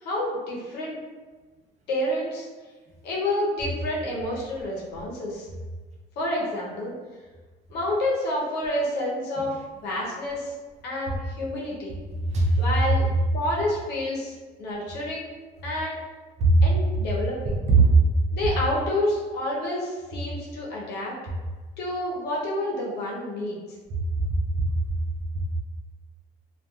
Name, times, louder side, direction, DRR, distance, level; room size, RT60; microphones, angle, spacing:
voice 1, 0.0-1.0 1.9-2.5 3.0-5.5 6.2-6.9 7.7-9.6 9.8-10.5 10.8-12.0 12.6-13.1 13.3-14.3 14.6-15.3 15.6-16.0 16.6-17.6 18.3-21.1 21.8-23.6, left 1 dB, 80° left, -3 dB, 0.7 m, -29 dB
voice 2, 12.2-12.7 16.4-16.6 17.7-18.0 23.9-24.3 24.6-24.7, right 3 dB, 40° right, -1 dB, 0.6 m, -19 dB
2.7 x 2.3 x 2.3 m, 1.3 s
cardioid pair, 110°, 17 cm